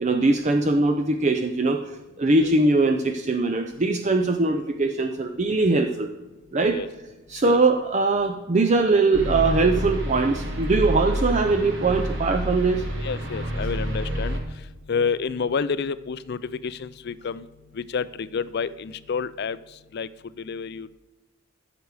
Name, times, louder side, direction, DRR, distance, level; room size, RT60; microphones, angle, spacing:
voice 1, 0.0-1.8 2.2-6.1 6.5-6.8 7.3-12.8, right 3 dB, 35° right, 6 dB, 0.5 m, -21 dB
sound 1, 9.1-14.4, equal, 65° right, 2.0 m, -28 dB
voice 2, 13.0-14.4 14.9-17.5 17.7-19.6 19.9-20.1 20.4-21.0, left 5 dB, 50° left, 16 dB, 0.4 m, -29 dB
14.5 x 6.8 x 4.8 m, 1.1 s
head